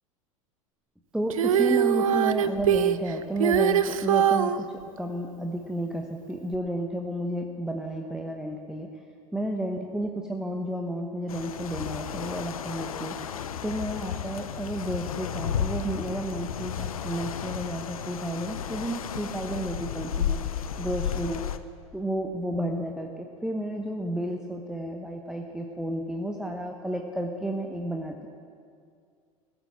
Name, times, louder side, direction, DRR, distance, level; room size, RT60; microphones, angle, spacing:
voice 1, 1.1-4.7 5.0-8.9 9.3-13.2 13.6-20.4 20.8-21.4 21.9-28.3, right 1 dB, 5° right, 3 dB, 0.9 m, -32 dB
Female singing, 1.3-4.6 6.5-6.6, right 9 dB, 70° right, 0.6 m, -22 dB
sound 1, 11.3-21.6, left 8 dB, 75° left, 0.6 m, -33 dB
15.5 x 8.9 x 7.1 m, 2.3 s
figure-of-eight pair, 85°, 18 cm